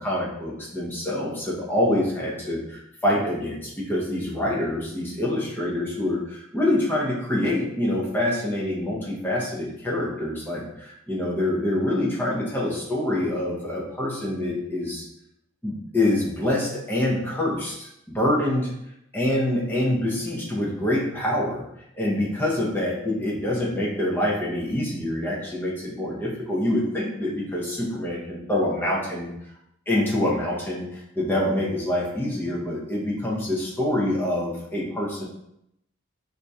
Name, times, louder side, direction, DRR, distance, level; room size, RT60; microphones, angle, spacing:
voice 1, 0.0-15.0 15.6-18.7 19.1-21.6 21.9-29.3 29.9-35.2, left 1 dB, 10° left, -5 dB, 0.7 m, -26 dB
2.9 x 2.7 x 3.4 m, 0.79 s
head